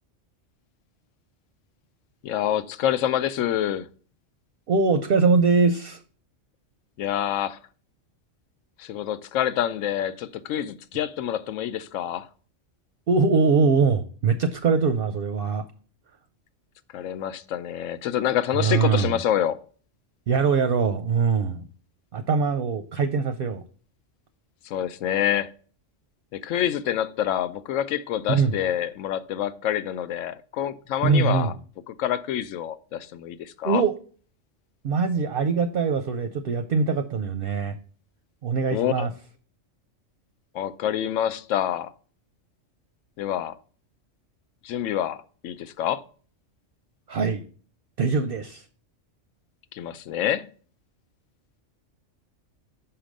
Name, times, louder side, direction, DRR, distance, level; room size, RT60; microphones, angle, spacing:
voice 1, 2.2-3.9 7.0-7.6 8.8-12.3 16.9-19.6 24.6-25.5 26.3-31.5 31.9-33.8 38.7-39.1 40.5-41.9 43.2-43.6 44.6-46.0 49.7-50.5, left 10 dB, 85° left, 0.9 m, -27 dB
voice 2, 4.7-6.0 13.1-15.6 18.6-19.1 20.3-21.7 22.1-23.6 28.3-28.5 31.0-31.5 33.6-33.9 34.8-37.8 38.4-39.1 47.1-47.4 48.0-48.6, right 5 dB, 60° right, 0.7 m, -22 dB
5.8 x 4.8 x 5.1 m
omnidirectional pair, 1.3 m